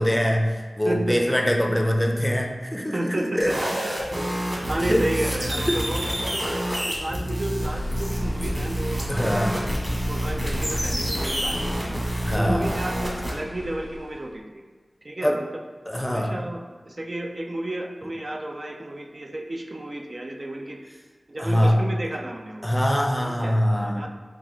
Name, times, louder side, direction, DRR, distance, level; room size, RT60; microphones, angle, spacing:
voice 1, 0.0-3.5 4.8-5.1 5.6-5.9 9.1-9.6 12.2-12.8 15.2-15.4 15.9-16.3 21.4-21.8 22.6-24.1, equal, 10° left, 2 dB, 0.5 m, -23 dB
voice 2, 0.8-1.4 2.9-3.7 4.7-9.4 10.1-12.0 12.3-14.6 15.0-15.5 16.0-20.8 21.3-22.7 23.3-24.1, right 1 dB, 50° right, 2 dB, 0.4 m, -32 dB
sound 1, 3.4-13.3, right 1 dB, 25° right, 1.4 m, -28 dB
sound 2, 7.6-14.3, left 1 dB, 65° left, 0.4 m, -34 dB
4.0 x 2.3 x 4.3 m, 1.4 s
cardioid pair, 40°, 0 cm